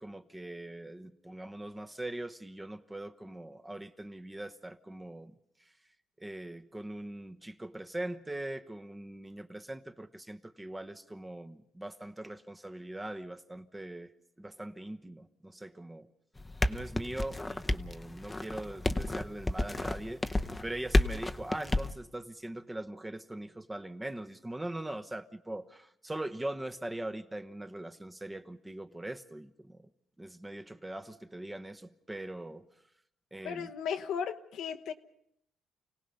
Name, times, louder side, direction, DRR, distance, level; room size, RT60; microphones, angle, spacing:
voice 1, 0.0-5.3 6.2-14.1 14.4-16.1 16.7-29.9 30.2-32.7 33.3-33.7, right 1 dB, 15° right, 1.1 m, -41 dB
sound 1, 16.4-21.9, left 1 dB, 15° left, 0.9 m, -31 dB
voice 2, 33.4-34.9, left 7 dB, 80° left, 1.1 m, -35 dB
29.5 x 17.5 x 5.5 m
cardioid pair, 90°, 0 cm